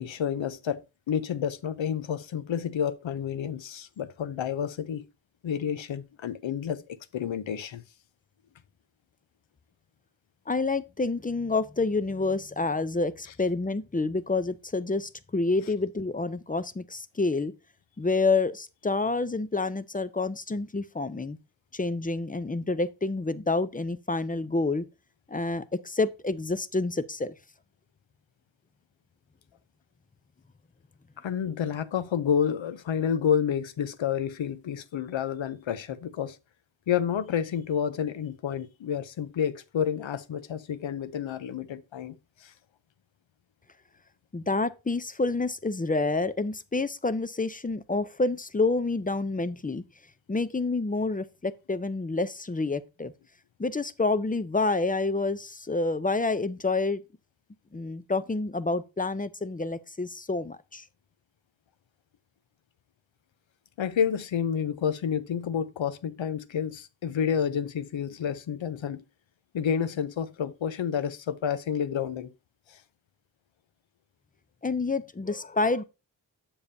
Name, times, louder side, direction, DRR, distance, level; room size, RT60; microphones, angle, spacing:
voice 1, 0.0-5.0 5.4-7.8 31.2-36.4 36.9-42.1 42.4-42.5 63.8-69.0 69.5-72.3 72.7-72.8, left 8 dB, 75° left, 0.7 m, -29 dB
voice 2, 10.5-17.5 18.0-21.4 21.7-24.8 25.3-27.3 44.3-49.8 50.3-53.1 53.6-57.0 57.7-60.8 74.6-75.8, left 3 dB, 20° left, 0.5 m, -28 dB
7.0 x 7.0 x 2.6 m
cardioid pair, 45°, 46 cm